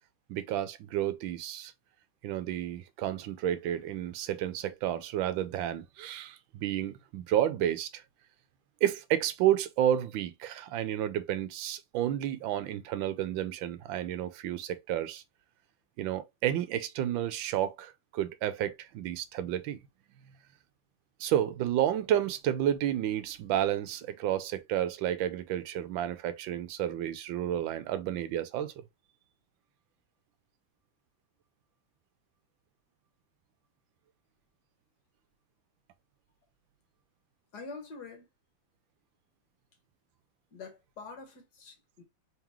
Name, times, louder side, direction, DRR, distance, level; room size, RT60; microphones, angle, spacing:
voice 1, 0.3-1.7 2.2-8.0 8.8-15.2 16.0-19.8 21.2-28.7, right 11 dB, 80° right, 1.3 m, -31 dB
voice 2, 37.5-38.3 40.5-42.0, left 4 dB, 60° left, 1.7 m, -45 dB
3.6 x 3.5 x 3.0 m
omnidirectional pair, 2.1 m